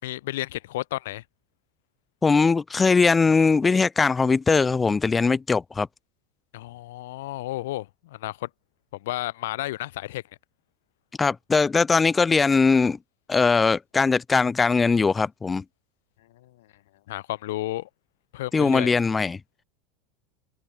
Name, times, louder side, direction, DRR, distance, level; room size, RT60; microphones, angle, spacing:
voice 1, 0.0-1.2 6.5-8.5 8.9-10.2 16.3-16.7 17.1-17.9 18.3-18.9, left 16 dB, 70° left, 6.2 m, -32 dB
voice 2, 2.2-5.9 11.2-13.0 13.3-15.6 18.5-19.4, left 4 dB, 20° left, 4.7 m, -20 dB
figure-of-eight pair, 80°, 0 cm